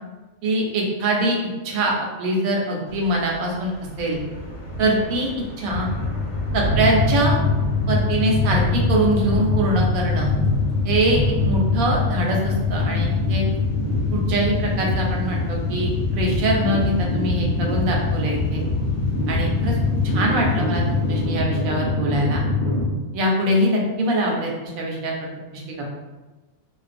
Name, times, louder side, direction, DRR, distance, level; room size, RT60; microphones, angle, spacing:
voice 1, 0.4-1.4 1.6-3.7 4.0-4.2 4.8-5.3 5.6-5.9 6.5-7.4 7.9-10.3 10.8-11.2 11.4-13.5 14.1-18.6 19.3-19.8 20.0-22.4 23.1-25.2 25.5-25.9, right 1 dB, 90° right, -1 dB, 1.0 m, -23 dB
Thunder / Rain, 2.9-21.3, left 1 dB, 85° left, 1.1 m, -33 dB
sound 1, 5.7-22.8, left 3 dB, 55° left, 0.8 m, -23 dB
2.4 x 2.1 x 2.5 m, 1.2 s
omnidirectional pair, 1.4 m